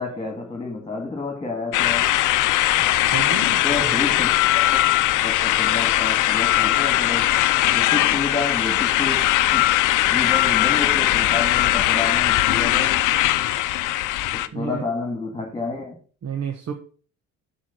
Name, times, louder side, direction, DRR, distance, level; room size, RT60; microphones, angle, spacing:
voice 1, 0.0-2.1 3.4-7.3 7.7-9.6 10.1-13.1 14.5-16.0, left 3 dB, 15° left, 2.1 m, -30 dB
sound 1, 1.7-14.5, left 15 dB, 80° left, 0.6 m, -20 dB
voice 2, 2.8-4.0 14.5-14.8 16.2-16.7, right 7 dB, 55° right, 1.3 m, -31 dB
7.3 x 4.9 x 6.0 m
cardioid pair, 90°, 30 cm